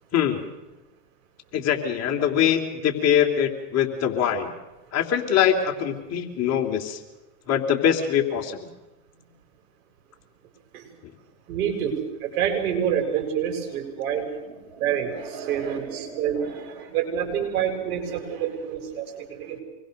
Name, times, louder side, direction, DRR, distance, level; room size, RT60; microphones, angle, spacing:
voice 1, 1.5-4.5 4.9-7.0 7.5-8.7, left 9 dB, 35° left, 3 dB, 3.2 m, -23 dB
voice 2, 11.5-19.6, right 8 dB, 60° right, 3 dB, 6.9 m, -27 dB
26.5 x 21.5 x 6.6 m, 1.1 s
hypercardioid pair, 120°, 47 cm